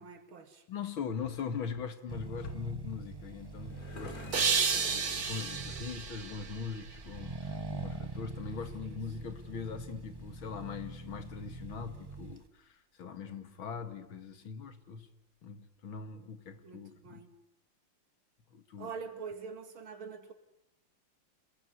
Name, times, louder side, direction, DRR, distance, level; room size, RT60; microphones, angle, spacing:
voice 1, 0.0-0.7 5.2-5.5 8.8-9.0 16.6-17.4 18.8-20.3, right 5 dB, 80° right, 7 dB, 3.2 m, -45 dB
voice 2, 0.7-15.1 15.4-17.2 18.5-18.9, left 6 dB, 80° left, 10 dB, 2.7 m, -41 dB
Accelerating revving vroom, 2.1-12.5, right 3 dB, 15° right, 0.8 m, -44 dB
sound 1, 2.9-6.5, left 3 dB, 45° left, 4.2 m, -52 dB
sound 2, 4.3-7.5, right 5 dB, 50° right, 2.2 m, -32 dB
28.0 x 21.5 x 9.7 m, 0.82 s
omnidirectional pair, 2.2 m